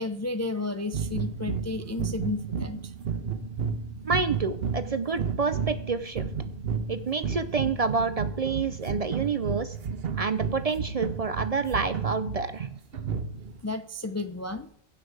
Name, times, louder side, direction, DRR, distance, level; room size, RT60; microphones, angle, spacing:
voice 1, 0.0-2.9 13.6-14.7, left 2 dB, 25° left, 9 dB, 0.3 m, -32 dB
sound 1, 0.9-13.6, right 6 dB, 65° right, 1.1 m, -32 dB
voice 2, 4.0-6.3 6.9-9.7 10.1-12.7, right 4 dB, 45° right, 12 dB, 0.5 m, -28 dB
16.0 x 5.9 x 4.7 m, 0.67 s
omnidirectional pair, 1.1 m